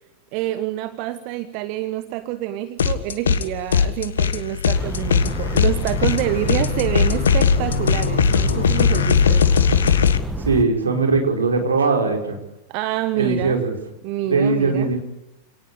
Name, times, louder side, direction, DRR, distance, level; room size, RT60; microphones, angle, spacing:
voice 1, 0.3-9.5 12.7-13.6 14.0-14.9, right 14 dB, 45° right, 12 dB, 1.2 m, -27 dB
sound 1, 2.8-3.4 3.7-10.2, left 6 dB, 65° left, 1.5 m, -19 dB
sound 2, 4.7-10.6, right 1 dB, 5° right, 1.7 m, -29 dB
voice 2, 10.4-12.4 13.2-13.7 14.2-15.0, right 4 dB, 75° right, 2 dB, 5.1 m, -20 dB
28.0 x 18.5 x 8.5 m, 0.86 s
figure-of-eight pair, 90°, 0 cm